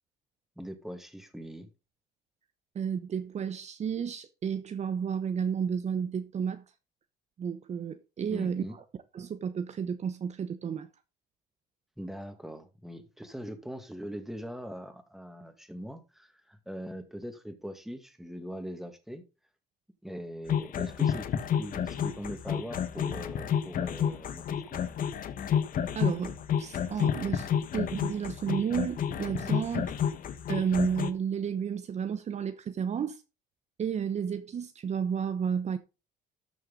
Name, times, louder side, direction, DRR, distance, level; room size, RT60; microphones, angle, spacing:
voice 1, 0.6-1.7 8.3-8.8 12.0-19.2 20.0-24.8, equal, ahead, 2.3 m, -41 dB
voice 2, 2.7-6.6 7.4-8.6 9.1-10.9 25.9-29.9 30.5-33.2 33.8-35.8, right 7 dB, 40° right, 1.0 m, -32 dB
sound 1, 20.5-31.1, left 8 dB, 55° left, 1.5 m, -30 dB
13.0 x 6.4 x 4.0 m
cardioid pair, 110°, 17 cm